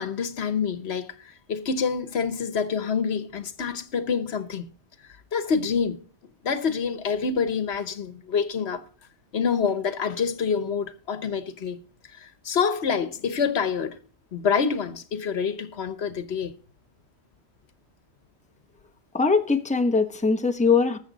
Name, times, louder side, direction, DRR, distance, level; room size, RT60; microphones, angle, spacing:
voice 1, 0.0-4.7 5.3-6.0 6.4-8.9 9.3-11.8 12.1-14.0 14.3-16.5, left 6 dB, 70° left, 1.2 m, -27 dB
voice 2, 19.1-21.0, left 4 dB, 5° left, 0.9 m, -21 dB
19.5 x 7.3 x 4.0 m
omnidirectional pair, 1.1 m